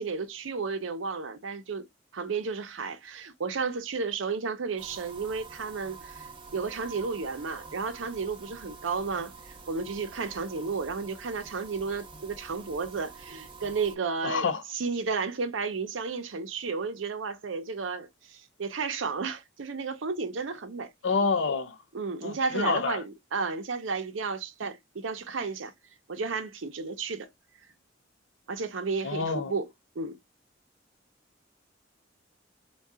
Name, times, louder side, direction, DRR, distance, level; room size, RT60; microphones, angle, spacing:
voice 1, 0.0-1.9 2.1-14.5 14.7-20.9 21.9-25.7 26.1-27.3 28.5-29.7 30.0-30.2, right 4 dB, 80° right, 0.6 m, -33 dB
sound 1, 4.8-14.0, right 4 dB, 25° right, 0.6 m, -47 dB
voice 2, 14.2-14.6 21.0-21.8 22.2-23.0 29.0-29.5, left 4 dB, 70° left, 0.5 m, -28 dB
3.6 x 2.3 x 2.2 m
head